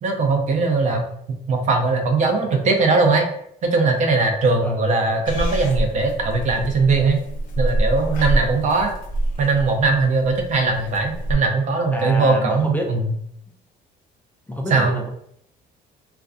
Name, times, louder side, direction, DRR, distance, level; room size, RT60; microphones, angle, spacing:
voice 1, 0.0-3.3 3.6-7.2 7.6-8.9 9.4-13.1 14.7-15.0, right 3 dB, 45° right, 3 dB, 0.5 m, -20 dB
Purr / Meow, 5.3-11.3, right 1 dB, 55° left, 0.6 m, -26 dB
voice 2, 11.9-12.9 14.5-15.1, equal, 10° left, 0 dB, 0.3 m, -27 dB
2.4 x 2.2 x 2.4 m, 0.71 s
cardioid pair, 110°, 17 cm